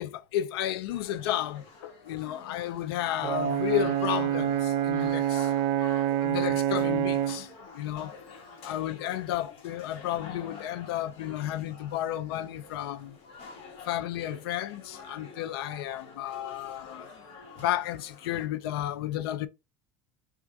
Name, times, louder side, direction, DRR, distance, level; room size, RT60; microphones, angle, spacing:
voice 1, 0.0-5.5 6.0-8.2 8.6-13.2 13.9-17.1 17.3-19.5, left 12 dB, 85° left, 0.4 m, -32 dB
sound 1, 0.9-18.5, left 4 dB, 50° left, 1.3 m, -48 dB
Brass instrument, 3.2-7.5, right 11 dB, 60° right, 0.4 m, -27 dB
3.4 x 2.4 x 3.8 m
supercardioid pair, 90°, 12 cm